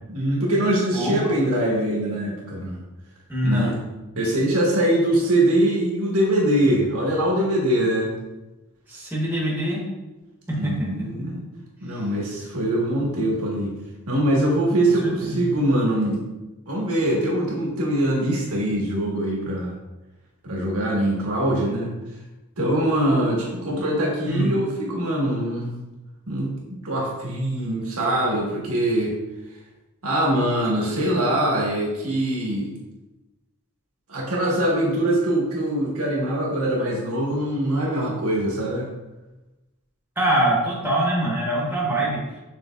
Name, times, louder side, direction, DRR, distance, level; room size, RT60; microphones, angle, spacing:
voice 1, 0.1-2.8 3.4-3.8 4.2-8.1 10.5-11.4 11.8-13.7 14.1-16.2 16.7-19.7 20.4-21.9 22.6-25.7 26.3-26.5 26.8-29.1 30.0-32.7 34.1-38.9, right 1 dB, 80° right, -3 dB, 1.3 m, -23 dB
voice 2, 0.9-1.3 3.3-3.7 8.9-9.8 10.5-11.3 15.0-15.4 24.3-24.5 40.2-42.2, right 1 dB, 10° right, -5 dB, 1.0 m, -24 dB
6.3 x 3.4 x 2.3 m, 1.1 s
head